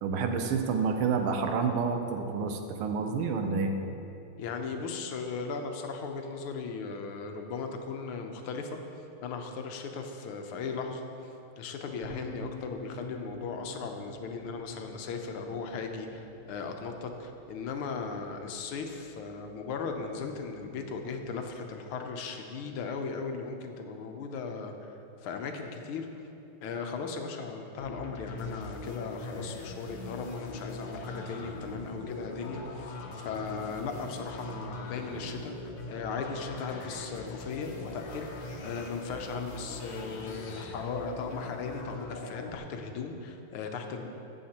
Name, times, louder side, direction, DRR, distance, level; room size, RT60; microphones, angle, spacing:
voice 1, 0.0-3.7, right 5 dB, 85° right, 5 dB, 1.6 m, -29 dB
voice 2, 4.4-11.1 11.6-24.9 25.2-26.1 26.6-38.3 38.6-44.1, left 4 dB, 90° left, 4 dB, 1.6 m, -37 dB
sound 1, 12.0-21.4, left 1 dB, 30° right, 2.3 m, -50 dB
sound 2, 27.8-42.6, left 2 dB, 65° left, 1.4 m, -41 dB
14.0 x 7.3 x 2.9 m, 2.8 s
omnidirectional pair, 2.3 m